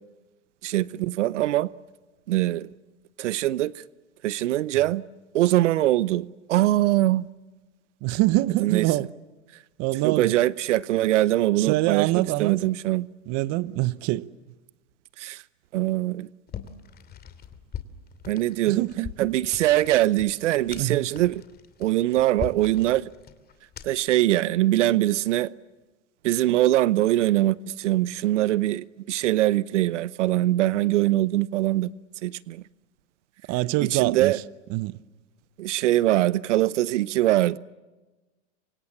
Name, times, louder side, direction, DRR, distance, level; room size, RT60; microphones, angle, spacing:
voice 1, 0.6-1.7 2.3-2.7 3.2-3.8 4.2-5.0 5.3-7.3 8.6-8.9 10.0-13.1 15.2-15.4 15.7-16.3 18.3-18.9 19.2-21.4 21.8-23.1 23.8-25.5 26.2-31.9 32.2-32.6 33.8-34.4 35.6-37.6, right 15 dB, 80° right, 0.8 m, -22 dB
voice 2, 8.0-9.1 9.8-10.4 11.6-12.6 13.3-14.3 18.7-19.3 20.8-21.1 33.5-34.3 34.7-35.0, right 18 dB, 45° right, 0.9 m, -25 dB
sound 1, 16.5-24.1, left 8 dB, 25° left, 2.6 m, -41 dB
29.5 x 25.0 x 7.3 m
hypercardioid pair, 120°, 35 cm